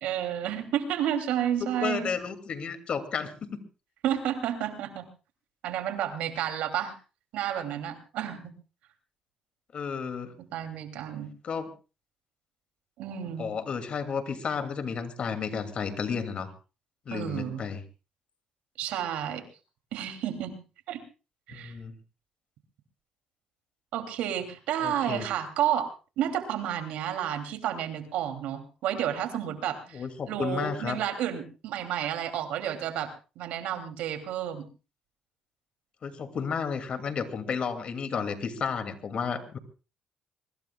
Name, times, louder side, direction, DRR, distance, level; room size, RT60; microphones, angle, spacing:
voice 1, 0.0-2.1 4.0-5.1 5.6-6.9 7.3-8.5 10.5-11.3 13.0-13.5 17.1-17.6 18.8-19.4 19.9-20.5 20.9-21.0 21.5-21.7 23.9-25.9 26.2-33.1 33.4-34.7, right 10 dB, 85° right, 7 dB, 2.8 m, -31 dB
voice 2, 1.6-3.6 9.7-10.3 11.4-11.7 13.4-16.5 17.1-17.8 21.5-21.9 24.8-25.3 29.9-31.0 36.0-39.6, left 6 dB, 55° left, 9 dB, 2.4 m, -32 dB
23.5 x 20.5 x 2.3 m, 0.33 s
supercardioid pair, 75°, 2 cm